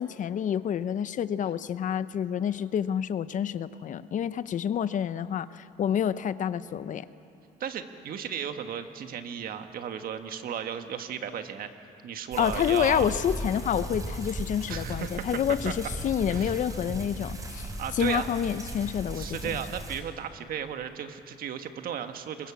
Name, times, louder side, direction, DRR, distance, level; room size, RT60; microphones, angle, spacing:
voice 1, 0.0-7.1 12.4-19.6, left 9 dB, 50° left, 14 dB, 0.8 m, -28 dB
voice 2, 7.6-11.7 12.0-13.1 14.7-15.3 15.6-15.7 16.3-16.6 17.8-18.3 19.1-22.5, right 8 dB, 60° right, 7 dB, 1.6 m, -35 dB
sound 1, 12.3-20.0, right 1 dB, 20° right, 3.8 m, -37 dB
25.5 x 23.0 x 7.2 m, 2.7 s
cardioid pair, 110°, 17 cm